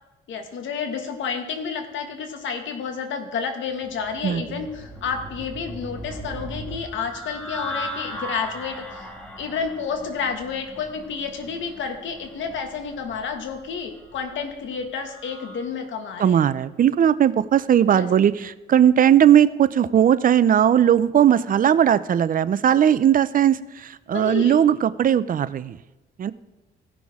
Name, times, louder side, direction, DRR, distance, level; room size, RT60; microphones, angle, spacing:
voice 1, 0.3-9.1 9.4-16.4 17.9-18.1 24.1-24.6, left 6 dB, 75° left, 5 dB, 1.5 m, -30 dB
sound 1, 3.8-15.7, equal, 5° left, 1.8 m, -38 dB
voice 2, 4.2-4.6 16.2-25.8 26.2-26.3, right 9 dB, 45° right, 16 dB, 0.5 m, -18 dB
16.5 x 6.1 x 3.6 m, 1.1 s
cardioid pair, 90°, 20 cm